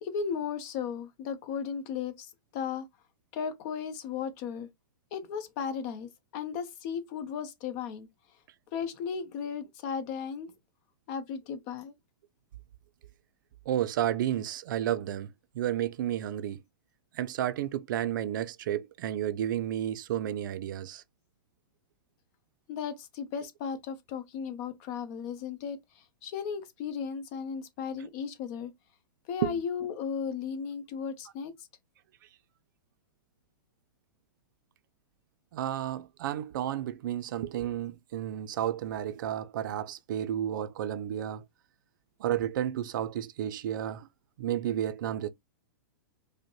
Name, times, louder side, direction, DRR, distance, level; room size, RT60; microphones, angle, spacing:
voice 1, 0.0-2.9 3.3-4.7 5.1-8.1 8.7-10.5 11.1-11.9 22.7-28.7 29.3-31.5, left 6 dB, 45° left, 0.8 m, -35 dB
voice 2, 13.7-16.6 17.1-21.0 29.4-29.6 35.5-41.4 42.2-44.1 44.4-45.3, right 11 dB, 65° right, 0.4 m, -32 dB
4.9 x 2.1 x 3.0 m
hypercardioid pair, 125°, 12 cm